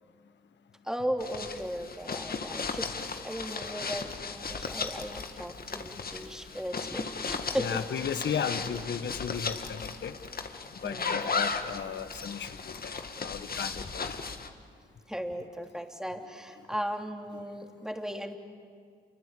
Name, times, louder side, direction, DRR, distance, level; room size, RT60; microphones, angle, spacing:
voice 1, 0.8-7.8 10.8-11.3 15.1-18.4, equal, 5° right, 3 dB, 3.2 m, -37 dB
sound 1, 1.2-14.5, left 5 dB, 50° left, 2.0 m, -36 dB
voice 2, 7.6-10.2 10.8-12.9 13.2-14.1, left 7 dB, 65° left, 11 dB, 1.4 m, -35 dB
28.5 x 24.0 x 8.4 m, 2.2 s
supercardioid pair, 45°, 20 cm